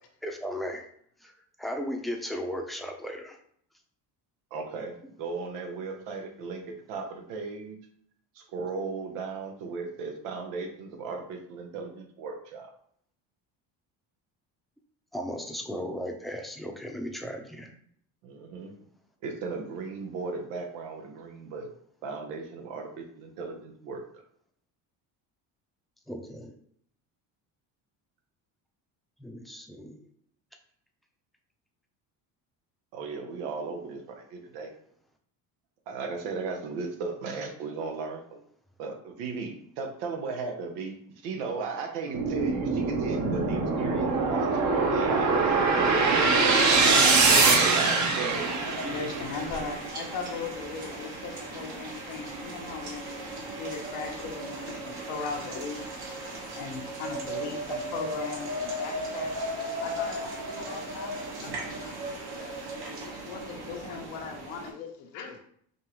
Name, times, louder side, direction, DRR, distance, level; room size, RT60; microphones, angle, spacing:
voice 1, 0.2-0.8 1.2-1.3 1.6-3.4 15.1-17.7 26.1-26.6 29.2-30.0, equal, ahead, 2 dB, 0.6 m, -36 dB
voice 2, 4.5-6.6 6.9-7.8 8.3-12.7 18.2-18.8 19.2-21.7 22.0-24.2 32.9-34.7 35.9-38.4 38.8-46.2 46.6-48.5, right 4 dB, 90° right, 3 dB, 1.0 m, -36 dB
sound 1, 42.1-49.4, right 4 dB, 40° right, 0.9 m, -23 dB
sound 2, 48.3-64.7, right 1 dB, 60° right, 1.5 m, -37 dB
voice 3, 48.8-55.9 56.2-59.3 59.8-65.4, left 5 dB, 85° left, 3 dB, 1.0 m, -39 dB
5.3 x 2.6 x 3.0 m, 0.64 s
supercardioid pair, 90°, 43 cm